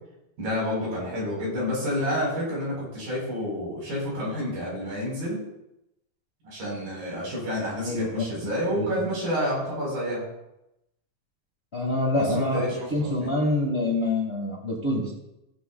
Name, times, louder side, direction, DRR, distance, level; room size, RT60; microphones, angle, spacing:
voice 1, 0.4-5.4 6.4-10.2 12.1-13.3, equal, 85° right, -4 dB, 6.2 m, -29 dB
voice 2, 7.7-8.2 8.7-9.0 11.7-15.1, left 2 dB, 25° left, -3 dB, 1.6 m, -26 dB
17.5 x 7.9 x 2.3 m, 0.87 s
omnidirectional pair, 4.0 m